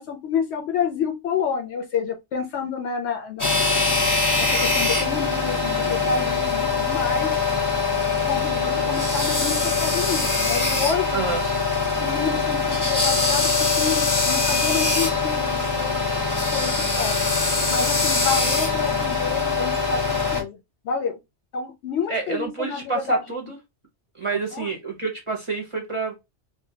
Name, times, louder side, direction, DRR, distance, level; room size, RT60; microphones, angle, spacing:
voice 1, 0.0-3.7 4.4-7.3 8.3-11.2 12.0-16.0 16.5-16.7 17.0-17.2 17.7-20.0 20.3-20.6 20.8-21.2 21.5-23.2 24.5-24.7, left 5 dB, 70° left, 0.8 m, -28 dB
sound 1, 3.4-20.4, left 4 dB, 20° left, 0.5 m, -22 dB
voice 2, 11.1-11.4 22.1-23.6 24.1-26.1, right 4 dB, 35° right, 0.6 m, -28 dB
2.6 x 2.2 x 2.6 m
omnidirectional pair, 1.2 m